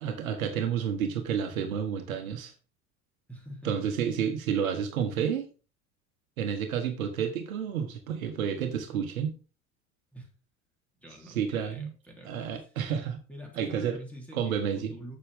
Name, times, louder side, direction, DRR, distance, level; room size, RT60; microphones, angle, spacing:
voice 1, 0.0-2.5 3.6-5.5 6.4-9.4 11.3-11.9 12.2-13.2 13.5-14.0 14.3-14.9, right 8 dB, 70° right, 1.3 m, -30 dB
voice 2, 3.3-4.1 10.1-10.3 11.0-12.7 13.3-15.2, right 1 dB, 5° left, 2.9 m, -46 dB
7.5 x 6.9 x 3.5 m
figure-of-eight pair, 75°, 43 cm